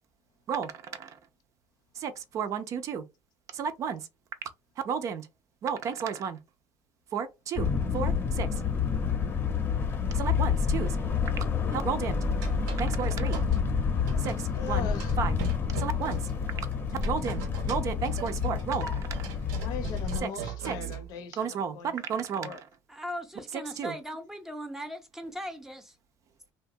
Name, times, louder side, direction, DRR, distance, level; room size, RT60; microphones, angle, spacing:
voice 1, 2.0-3.0 3.5-4.0 4.9-5.3 5.6-6.4 7.1-8.5 10.1-11.0 11.7-12.2 12.8-13.4 14.2-14.3 14.7-14.9 15.2-15.4 15.8-16.2 17.0-19.3 20.2-20.3 20.7-20.8 21.4-22.6 23.8-23.9, right 6 dB, 45° right, 0.4 m, -32 dB
sound 1, 7.6-20.2, left 6 dB, 30° left, 0.7 m, -29 dB
sound 2, 12.3-13.6 14.1-14.6 15.0-21.1, right 8 dB, 85° right, 0.8 m, -41 dB
voice 2, 14.1-15.2 19.6-22.6, left 7 dB, 65° left, 0.6 m, -40 dB
voice 3, 22.9-26.0, equal, 5° right, 0.6 m, -39 dB
2.8 x 2.2 x 2.6 m
cardioid pair, 125°, 7 cm